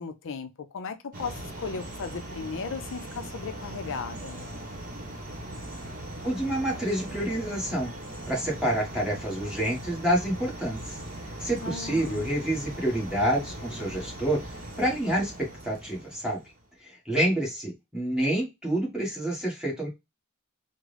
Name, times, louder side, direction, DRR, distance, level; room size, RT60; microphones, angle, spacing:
voice 1, 0.0-4.5 11.6-12.3, left 5 dB, 60° left, 0.5 m, -36 dB
sound 1, 1.1-16.6, right 1 dB, 40° right, 1.0 m, -40 dB
voice 2, 6.2-7.9 8.3-11.0 11.4-14.4 14.8-16.4 16.8-19.9, right 1 dB, 5° right, 1.4 m, -28 dB
3.7 x 2.1 x 3.2 m
head